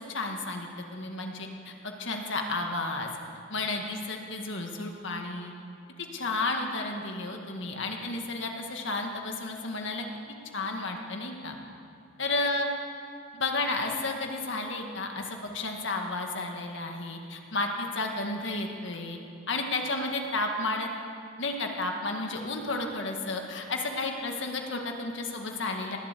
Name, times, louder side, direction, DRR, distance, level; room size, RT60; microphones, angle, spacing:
voice 1, 0.1-3.1 3.5-5.5 6.0-10.0 10.5-11.6 12.2-12.7 13.3-19.2 19.5-20.9 21.4-26.0, left 2 dB, 65° left, 2 dB, 1.8 m, -32 dB
20.0 x 8.0 x 8.3 m, 2.6 s
head